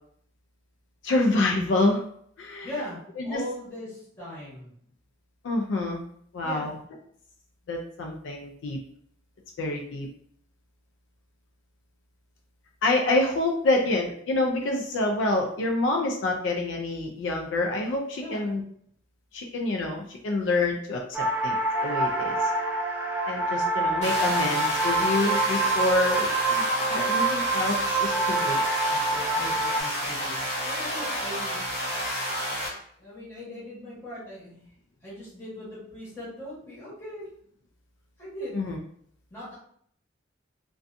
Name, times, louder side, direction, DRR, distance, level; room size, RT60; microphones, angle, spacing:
voice 1, 1.0-2.0 2.4-2.7 3.2-3.4 5.4-6.0 6.3-6.7 7.7-8.8 9.6-10.1 12.8-18.6 19.3-21.0 21.4-22.5 23.3-28.6 38.5-38.8, left 2 dB, 75° left, 1 dB, 0.4 m, -27 dB
voice 2, 2.6-4.7 6.4-6.8 13.7-13.9 18.1-18.5 28.9-30.3 30.6-31.6 32.6-34.7 35.0-37.3 38.2-38.7 39.3-39.6, left 1 dB, 15° left, -9 dB, 1.2 m, -40 dB
sound 1, 21.1-29.8, right 2 dB, 10° right, 0.3 m, -26 dB
sound 2, 24.0-32.7, equal, 35° left, 0.9 m, -30 dB
2.5 x 2.2 x 2.5 m, 0.66 s
head